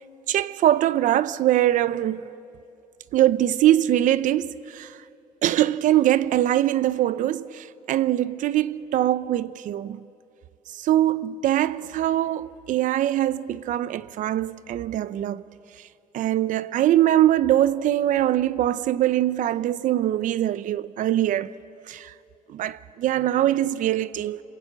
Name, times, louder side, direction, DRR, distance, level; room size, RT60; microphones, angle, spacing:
voice 1, 0.3-2.2 3.1-5.0 5.4-10.0 10.7-15.4 16.1-21.5 21.9-22.1 22.5-24.4, right 13 dB, 65° right, 0.7 m, -22 dB
28.5 x 22.5 x 8.4 m
cardioid pair, 120°, 14 cm